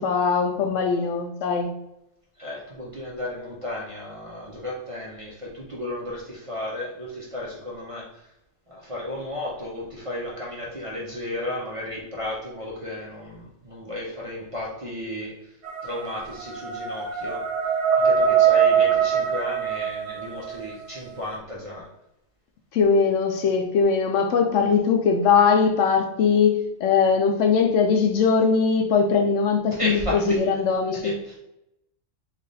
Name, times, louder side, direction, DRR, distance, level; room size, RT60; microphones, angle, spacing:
voice 1, 0.0-1.7 22.7-26.6 26.8-31.1, left 5 dB, 80° left, 4 dB, 0.9 m, -20 dB
voice 2, 2.4-8.3 8.7-15.5 15.8-17.4 17.9-21.9 29.7-30.4 31.0-31.4, left 1 dB, 35° right, -4 dB, 0.6 m, -34 dB
sound 1, 15.6-20.7, right 7 dB, 75° right, 1.0 m, -22 dB
3.2 x 2.4 x 3.9 m, 0.84 s
omnidirectional pair, 1.3 m